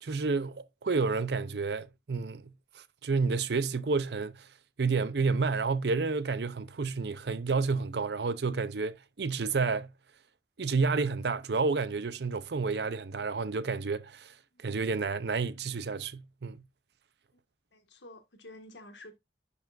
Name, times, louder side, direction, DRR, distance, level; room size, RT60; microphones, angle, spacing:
voice 1, 0.0-4.5 4.8-9.9 10.6-14.3 14.6-16.6, right 4 dB, 65° right, 0.6 m, -30 dB
voice 2, 17.7-19.2, left 1 dB, 85° left, 1.7 m, -51 dB
10.5 x 5.6 x 2.5 m
head